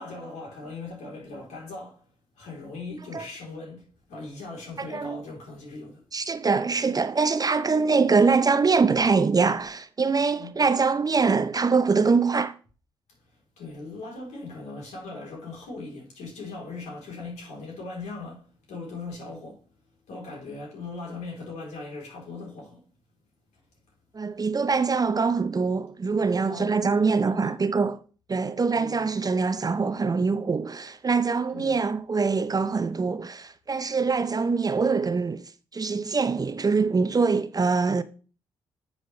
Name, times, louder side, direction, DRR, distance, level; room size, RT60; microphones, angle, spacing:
voice 1, 0.0-2.1 2.3-6.0 10.3-10.5 13.3-19.6 20.1-22.9 26.4-27.5 28.7-29.1 31.5-31.8, left 3 dB, 70° left, 3.6 m, -39 dB
voice 2, 4.8-5.2 6.1-12.5 24.1-28.0 28.3-35.4 35.7-38.0, right 4 dB, 30° right, 0.6 m, -23 dB
10.0 x 6.3 x 3.2 m
hypercardioid pair, 45°, 12 cm